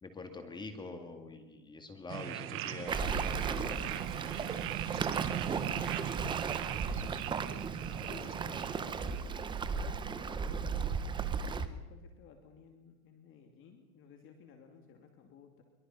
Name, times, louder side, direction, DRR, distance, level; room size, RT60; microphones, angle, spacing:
voice 1, 0.0-4.6 5.4-6.4, left 3 dB, 10° left, 6 dB, 2.1 m, -46 dB
sound 1, 2.1-9.6, right 12 dB, 30° right, 1.2 m, -39 dB
Waves surf, 2.9-11.7, right 5 dB, 10° right, 0.8 m, -36 dB
voice 2, 8.1-15.6, left 7 dB, 30° left, 4 dB, 2.6 m, -56 dB
23.5 x 22.0 x 5.6 m, 1.2 s
supercardioid pair, 145°, 41 cm